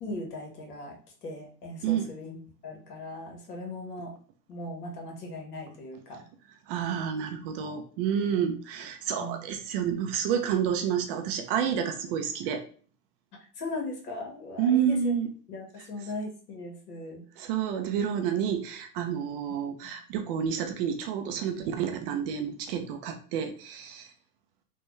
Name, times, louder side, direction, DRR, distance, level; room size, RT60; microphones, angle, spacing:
voice 1, 0.0-2.4 2.6-4.1 4.5-6.2 8.4-8.6 9.2-9.4 13.6-15.1 15.5-17.2 19.8-20.0, left 2 dB, 70° left, 1 dB, 1.3 m, -38 dB
voice 2, 6.7-12.7 14.6-15.3 17.4-24.1, right 8 dB, 40° right, 6 dB, 0.4 m, -29 dB
3.3 x 2.2 x 3.1 m, 0.42 s
hypercardioid pair, 100°, 47 cm